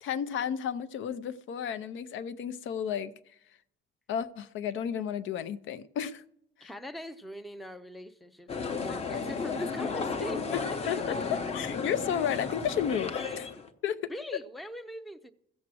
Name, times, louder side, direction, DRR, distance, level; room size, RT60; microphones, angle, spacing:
voice 1, 0.0-3.1 4.1-6.2 6.6-6.7 10.5-10.6 10.9-11.0 11.3-13.5 13.8-14.1, left 8 dB, 70° left, 0.7 m, -32 dB
voice 2, 6.6-10.4 10.7-10.8 13.2-13.4 14.1-15.3, equal, ahead, 0.5 m, -42 dB
sound 1, 8.5-13.7, left 5 dB, 30° left, 0.9 m, -34 dB
15.0 x 7.2 x 6.2 m
cardioid pair, 155°, 21 cm